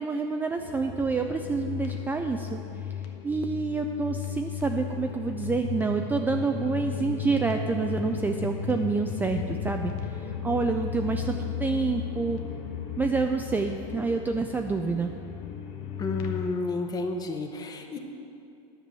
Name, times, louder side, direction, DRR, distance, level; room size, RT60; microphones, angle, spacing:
voice 1, 0.0-2.6 2.8-2.9 3.2-12.4 13.0-15.1, right 4 dB, 10° right, 4 dB, 0.3 m, -28 dB
sound 1, 0.6-16.5, left 8 dB, 65° left, 1.0 m, -35 dB
voice 2, 16.0-18.0, left 3 dB, 25° left, 5 dB, 0.9 m, -31 dB
10.0 x 5.3 x 7.5 m, 2.7 s
supercardioid pair, 120°, 17 cm